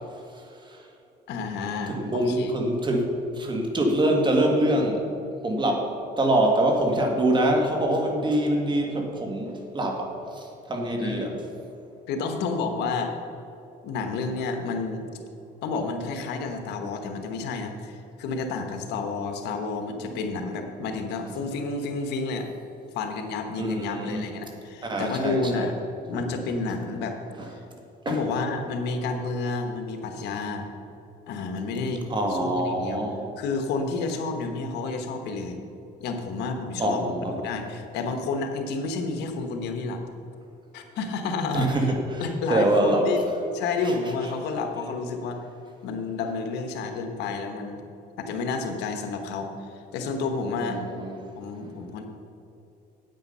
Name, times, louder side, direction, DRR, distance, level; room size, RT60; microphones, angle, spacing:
voice 1, 1.3-2.5 11.0-11.3 12.1-13.1 13.8-15.1 15.6-22.5 22.9-25.7 26.1-27.2 28.1-30.7 31.3-32.0 32.3-33.0 33.4-35.6 36.0-40.0 40.7-41.9 42.2-43.2 43.5-45.4 45.8-47.8 48.2-50.8 51.4-52.0, left 4 dB, 85° left, 5 dB, 1.2 m, -30 dB
voice 2, 1.9-5.1 5.4-5.9 6.2-11.4 20.1-20.2 23.6-24.2 24.8-25.7 27.4-27.5 28.1-28.2 32.1-33.3 36.8-37.4 41.5-42.2 42.5-43.1 43.8-43.9 50.6-51.2, right 1 dB, 25° right, 2 dB, 1.8 m, -25 dB
9.1 x 8.7 x 5.5 m, 2.8 s
cardioid pair, 110°, 17 cm